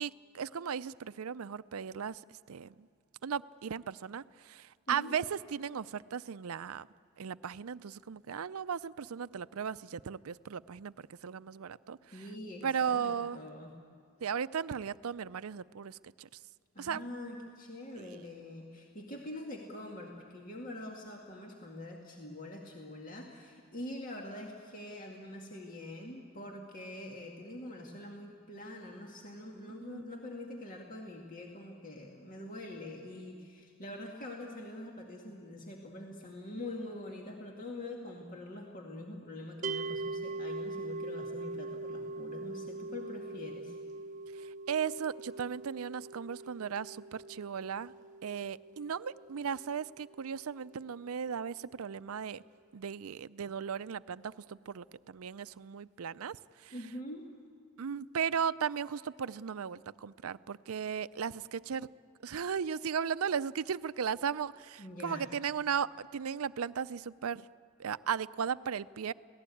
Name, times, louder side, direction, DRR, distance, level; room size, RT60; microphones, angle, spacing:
voice 1, 0.0-2.2 2.5-2.9 3.2-6.9 7.2-12.2 12.6-13.5 14.2-16.4 16.8-17.0 18.0-18.2 29.7-30.0 44.3-47.9 48.2-52.4 52.7-56.7 57.8-61.9 62.2-67.5 67.8-69.1, right 7 dB, 85° right, 16 dB, 0.5 m, -36 dB
voice 2, 4.9-5.2 12.1-13.7 16.7-43.8 56.7-57.3 64.8-65.3, left 1 dB, 40° left, 0 dB, 2.2 m, -44 dB
sound 1, 39.6-50.8, right 3 dB, 35° right, 0.9 m, -42 dB
27.0 x 18.0 x 8.5 m, 2.4 s
head